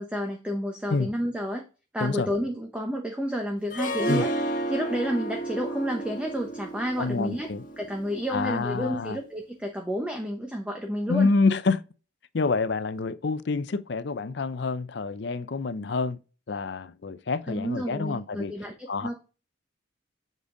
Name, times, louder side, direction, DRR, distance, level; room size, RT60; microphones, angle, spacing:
voice 1, 0.0-1.6 1.9-4.3 4.7-7.5 7.8-11.3 17.5-19.2, equal, 5° right, 0.8 m, -30 dB
Harp, 3.7-8.8, right 1 dB, 40° left, 1.5 m, -32 dB
voice 2, 7.0-7.6 8.3-9.2 11.1-11.8 12.3-16.2 16.5-18.5 18.9-19.1, left 4 dB, 55° left, 0.5 m, -27 dB
7.5 x 5.1 x 3.8 m
head